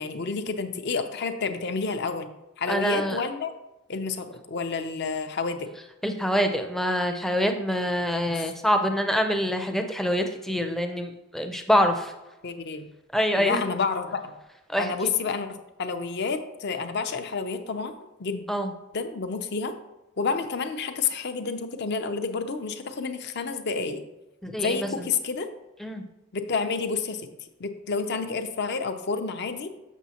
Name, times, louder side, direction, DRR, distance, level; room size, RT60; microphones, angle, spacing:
voice 1, 0.0-2.3 2.6-3.5 3.9-5.7 8.3-8.5 12.4-12.9 13.4-14.3 14.8-17.9 18.2-18.5 18.9-19.7 20.2-24.0 24.6-25.5 26.3-27.3 27.6-29.7, left 4 dB, 50° left, 8 dB, 0.6 m, -29 dB
voice 2, 2.7-3.2 6.0-12.1 13.1-13.7 14.7-14.9 18.5-18.7 24.4-25.1 25.8-26.0, equal, ahead, 5 dB, 0.5 m, -25 dB
7.2 x 6.3 x 2.9 m, 0.99 s
head